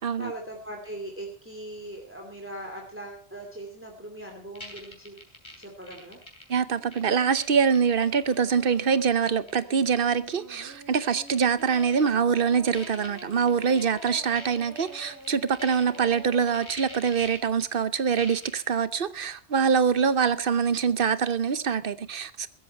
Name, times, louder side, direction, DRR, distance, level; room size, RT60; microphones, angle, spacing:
voice 1, 0.0-5.2 5.6-6.2, right 1 dB, 10° right, 2.6 m, -40 dB
sound 1, 4.6-8.4 8.7-8.9 9.3-10.0 10.3-10.4 10.7-10.8 11.3-12.1 12.4-12.5 12.7-16.2 16.5-17.6 18.2-18.6, left 1 dB, 25° left, 3.9 m, -44 dB
voice 2, 6.5-22.5, right 6 dB, 60° right, 1.0 m, -24 dB
Singing, 6.8-16.7, right 1 dB, 75° right, 3.5 m, -47 dB
16.0 x 13.5 x 4.4 m
omnidirectional pair, 1.1 m